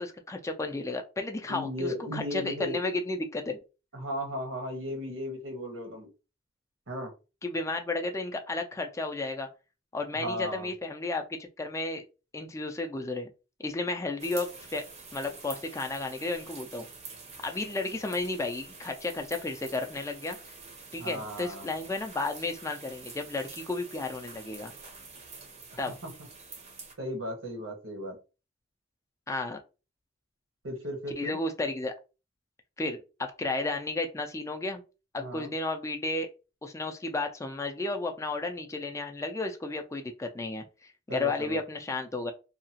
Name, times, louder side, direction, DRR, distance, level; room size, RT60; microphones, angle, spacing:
voice 1, 0.0-3.6 7.4-9.5 9.9-12.0 12.3-13.3 13.6-14.8 15.1-16.9 17.4-20.4 20.9-24.7 25.8-26.0 29.3-29.6 31.2-31.9 32.8-34.8 35.1-36.3 36.6-42.3, left 2 dB, 15° left, 4 dB, 0.3 m, -33 dB
voice 2, 1.5-2.9 3.9-6.1 6.9-7.1 10.1-10.7 21.0-21.7 26.0-26.1 27.0-28.2 30.6-31.4 35.2-35.5 41.1-41.6, equal, 85° right, 3 dB, 1.1 m, -36 dB
sound 1, 14.2-26.9, right 4 dB, 35° right, 0.6 m, -47 dB
2.8 x 2.3 x 2.7 m, 0.31 s
head